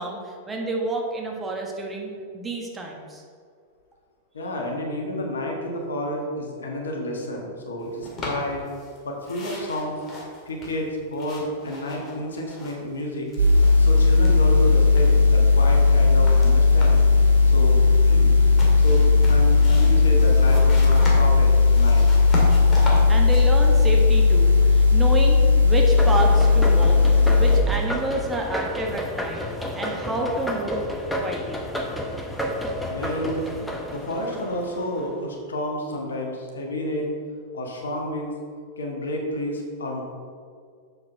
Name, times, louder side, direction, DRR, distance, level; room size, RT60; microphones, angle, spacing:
voice 1, 0.0-3.2 23.1-27.0 27.4-29.5 29.7-30.9 31.2-31.7, right 2 dB, 15° right, 0 dB, 1.3 m, -29 dB
voice 2, 4.3-8.6 9.0-10.0 10.4-13.3 13.8-17.0 17.4-18.3 18.8-22.0 32.9-33.5 33.9-37.1 37.5-38.3 38.8-40.0, left 1 dB, 70° left, 0 dB, 1.6 m, -30 dB
sound 1, 8.0-9.0 9.2-13.0 13.3-14.6 15.0-17.2 18.3-24.6, left 1 dB, 25° left, 2.1 m, -36 dB
sound 2, 13.4-27.6, left 3 dB, 75° right, 1.3 m, -16 dB
sound 3, 26.0-35.1, left 1 dB, 5° left, 1.0 m, -31 dB
7.2 x 6.5 x 4.5 m, 2.2 s
figure-of-eight pair, 95°, 0 cm